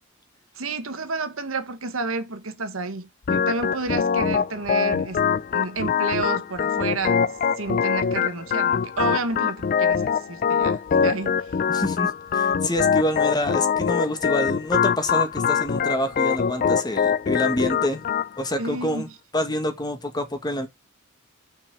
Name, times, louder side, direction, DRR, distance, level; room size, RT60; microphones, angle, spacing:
voice 1, 0.5-5.2 5.5-7.3 7.6-11.3 18.6-19.1, right 3 dB, 90° right, 1.4 m, -30 dB
Organ, 3.3-18.3, left 7 dB, 45° left, 0.4 m, -23 dB
voice 2, 11.7-18.0 18.4-19.1 19.3-20.7, left 1 dB, 20° left, 1.6 m, -27 dB
6.8 x 5.9 x 4.9 m
head